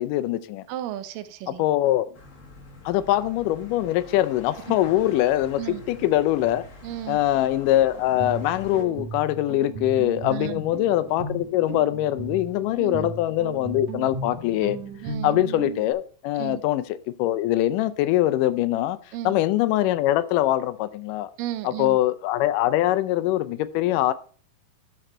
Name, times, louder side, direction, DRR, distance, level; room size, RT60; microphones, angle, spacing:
voice 1, 0.0-0.6 1.5-2.1 2.9-5.6 5.9-6.6 7.1-14.8 15.2-19.0 19.3-21.3 21.6-24.1, left 14 dB, 85° left, 2.2 m, -23 dB
voice 2, 0.7-1.6 5.6-5.8 6.8-7.2 10.3-10.6 12.8-13.1 15.0-15.3 16.4-16.6 19.1-19.4 21.4-22.0, right 13 dB, 85° right, 2.3 m, -33 dB
sound 1, 2.1-8.8, left 2 dB, 40° left, 1.2 m, -45 dB
Guitar, 7.9-15.9, right 3 dB, 55° right, 2.7 m, -35 dB
12.5 x 5.2 x 4.4 m
omnidirectional pair, 3.8 m